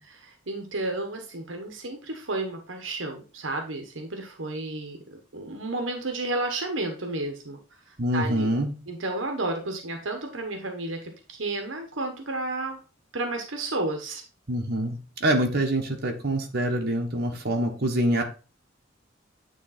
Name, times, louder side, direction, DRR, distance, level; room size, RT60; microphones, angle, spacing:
voice 1, 0.2-7.6 7.9-8.5 8.9-12.8 13.1-14.2, right 2 dB, 75° right, 4 dB, 1.2 m, -32 dB
voice 2, 8.0-8.7 14.5-18.2, right 1 dB, 55° right, 1 dB, 1.3 m, -25 dB
9.3 x 3.3 x 4.1 m, 0.35 s
head